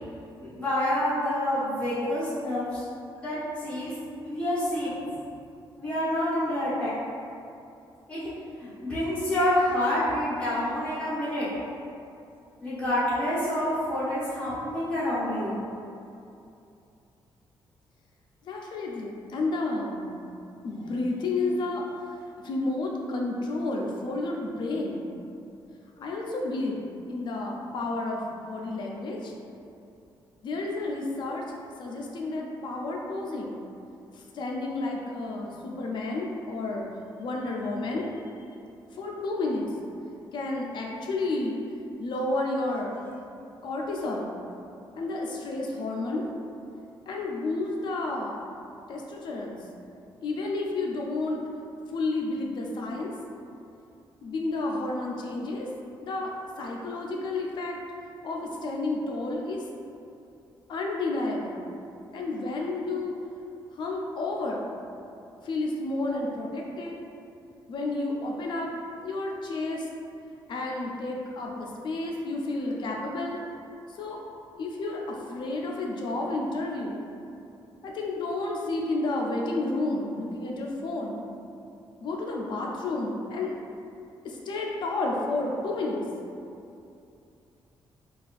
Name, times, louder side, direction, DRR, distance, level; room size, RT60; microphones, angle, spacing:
voice 1, 0.4-2.8 3.2-3.9 4.2-4.9 5.8-6.9 8.1-8.2 8.6-11.5 12.6-15.6, left 1 dB, 15° left, -12 dB, 1.0 m, -27 dB
voice 2, 18.5-20.1 20.6-21.8 22.4-25.1 26.0-26.8 27.1-29.3 30.4-31.5 31.8-33.6 34.3-36.9 37.2-38.2 38.9-39.7 40.3-41.6 42.0-43.1 43.6-44.3 45.0-46.3 47.1-48.4 48.9-49.6 50.2-51.4 51.9-53.1 54.2-55.7 56.0-56.3 56.6-57.8 58.2-59.6 60.7-61.6 62.1-63.2 63.8-64.7 65.4-67.0 67.7-68.7 69.0-69.9 70.5-73.4 74.0-74.2 74.6-77.0 77.8-81.2 82.0-83.5 84.2-86.0, left 2 dB, 60° left, -1 dB, 0.5 m, -31 dB
4.1 x 2.4 x 2.5 m, 2.6 s
cardioid pair, 145°, 9 cm